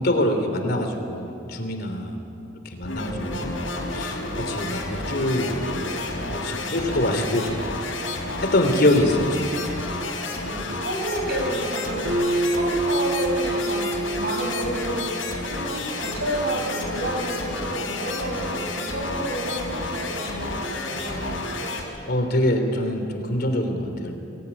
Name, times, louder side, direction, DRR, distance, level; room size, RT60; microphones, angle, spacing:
voice 1, 0.0-2.2 2.6-3.6 3.9-6.0 6.3-7.8 8.1-9.7 22.1-24.2, left 1 dB, 55° left, 5 dB, 3.3 m, -24 dB
sound 1, 2.8-21.8, left 2 dB, 85° left, 5.1 m, -30 dB
voice 2, 10.3-12.0 12.6-15.1 15.4-21.4, right 1 dB, 55° right, 0 dB, 7.1 m, -30 dB
Acoustic guitar, 12.1-15.5, right 1 dB, 85° right, 6.4 m, -26 dB
25.5 x 20.5 x 9.9 m, 2.7 s
head